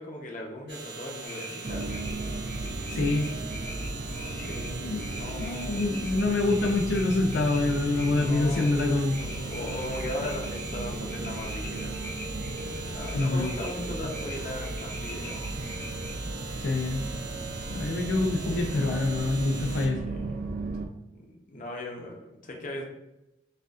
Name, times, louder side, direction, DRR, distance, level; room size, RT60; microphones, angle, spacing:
voice 1, 0.0-2.2 4.4-6.4 8.1-8.7 9.2-12.0 12.5-15.5 20.0-20.6 21.1-22.8, left 1 dB, 50° left, 0 dB, 0.8 m, -38 dB
sound 1, 0.7-19.9, right 4 dB, 75° right, 1.2 m, -42 dB
sound 2, 1.2-16.1, left 1 dB, 15° left, 0.8 m, -45 dB
sound 3, 1.6-20.8, right 2 dB, 55° right, 0.5 m, -36 dB
voice 2, 2.9-3.3 4.8-5.0 5.4-9.2 13.1-13.5 16.6-17.0 17.7-20.0, left 2 dB, 85° left, 1 dB, 0.5 m, -26 dB
6.6 x 2.4 x 2.4 m, 0.93 s
head